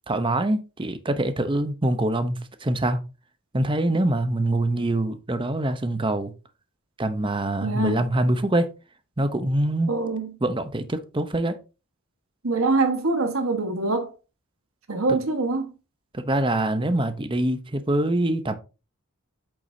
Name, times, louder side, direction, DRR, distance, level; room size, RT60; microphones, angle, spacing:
voice 1, 0.1-3.0 3.5-6.3 7.0-8.7 9.2-9.9 10.4-11.6 15.1-15.2 16.1-18.5, right 1 dB, 25° right, 0.8 m, -24 dB
voice 2, 7.6-8.0 9.9-10.3 12.4-14.1 14.9-15.7, right 3 dB, 80° right, 1.4 m, -24 dB
8.4 x 7.0 x 2.7 m
head